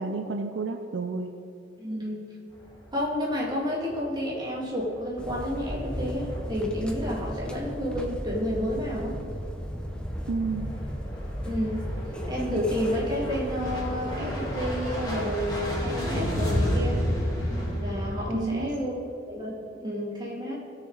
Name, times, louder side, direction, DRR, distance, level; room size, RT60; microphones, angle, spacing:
voice 1, 0.0-1.3 10.3-10.7 18.3-18.7, right 4 dB, 70° right, 5 dB, 0.6 m, -30 dB
voice 2, 1.8-2.3 2.9-9.2 11.4-11.9 12.3-17.0 17.8-19.0 19.3-20.6, equal, 25° right, -5 dB, 2.4 m, -30 dB
sound 1, 2.5-3.4 3.8-4.1 4.6-7.0 7.2-7.7 9.8-18.3, equal, 20° left, 2.5 m, -32 dB
sound 2, 5.2-16.1, equal, 5° left, 0.8 m, -35 dB
17.0 x 6.6 x 4.0 m, 2.6 s
head